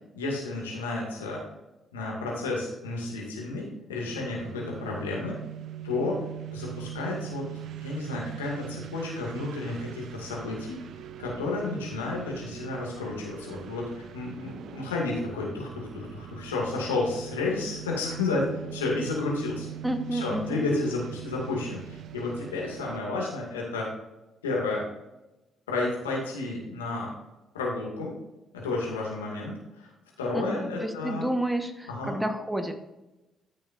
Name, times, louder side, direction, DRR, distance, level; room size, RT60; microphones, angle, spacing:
voice 1, 0.2-1.4 1.9-5.3 5.8-6.2 6.5-7.5 7.8-10.8 11.2-18.4 18.7-19.7 20.1-23.9 24.4-24.8 25.7-27.1 27.5-28.1 28.6-29.9 30.2-31.3 31.9-32.2, left 3 dB, 85° left, -3 dB, 2.3 m, -31 dB
sound 1, 4.0-23.0, right 12 dB, 60° right, 0.5 m, -41 dB
voice 2, 19.8-20.7 30.3-32.7, right 1 dB, 10° right, 7 dB, 1.3 m, -30 dB
13.5 x 6.5 x 2.6 m, 0.99 s
figure-of-eight pair, 45°, 0 cm